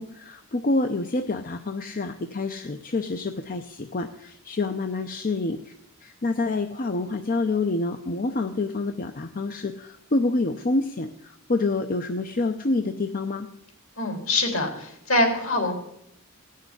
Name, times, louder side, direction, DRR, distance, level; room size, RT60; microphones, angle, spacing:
voice 1, 0.0-5.7 6.0-13.5, left 2 dB, 40° left, 7 dB, 0.6 m, -27 dB
voice 2, 14.0-15.7, left 2 dB, 65° left, 3 dB, 3.5 m, -24 dB
17.0 x 6.6 x 9.6 m, 0.77 s
head